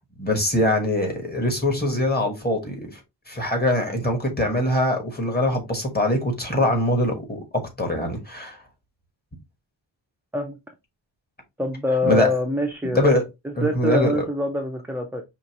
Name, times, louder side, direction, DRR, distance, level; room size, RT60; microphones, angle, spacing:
voice 1, 0.0-3.0 3.3-7.4 7.8-8.6 12.0-12.3 12.9-13.2 13.5-14.2, left 1 dB, 20° left, 1.3 m, -23 dB
voice 2, 11.6-13.1 13.6-15.2, left 1 dB, 5° right, 0.5 m, -25 dB
5.2 x 3.0 x 2.9 m
wide cardioid pair, 175°, 46 cm